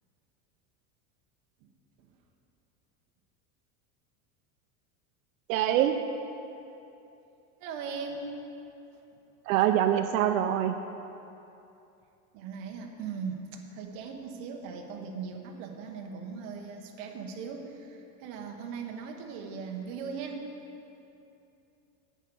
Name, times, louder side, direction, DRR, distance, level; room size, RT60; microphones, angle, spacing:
voice 1, 5.5-6.0 9.5-10.8, right 11 dB, 85° right, 7 dB, 0.6 m, -24 dB
voice 2, 7.6-8.3 12.3-20.5, right 5 dB, 45° right, 2 dB, 1.2 m, -39 dB
9.1 x 8.2 x 6.2 m, 2.8 s
supercardioid pair, 165°, 40 cm